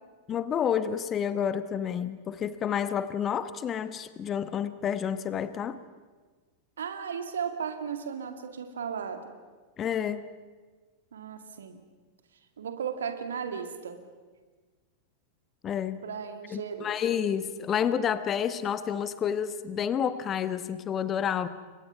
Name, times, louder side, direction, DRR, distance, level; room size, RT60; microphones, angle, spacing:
voice 1, 0.3-5.8 9.8-10.2 15.6-16.0 16.5-21.5, left 8 dB, 25° left, 13 dB, 1.2 m, -29 dB
voice 2, 6.8-9.3 11.1-11.8 12.6-14.0 16.0-16.9, right 7 dB, 65° right, 7 dB, 2.4 m, -35 dB
29.5 x 24.5 x 5.7 m, 1.4 s
figure-of-eight pair, 90°, 0 cm